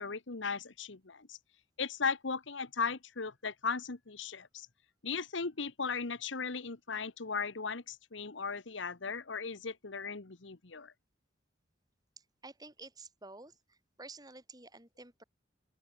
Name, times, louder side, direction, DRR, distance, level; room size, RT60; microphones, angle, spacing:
voice 1, 0.0-1.4 1.8-4.7 5.0-10.9, left 5 dB, 75° left, 1.2 m, -37 dB
voice 2, 12.4-15.2, right 3 dB, 20° right, 5.3 m, -51 dB
open air
head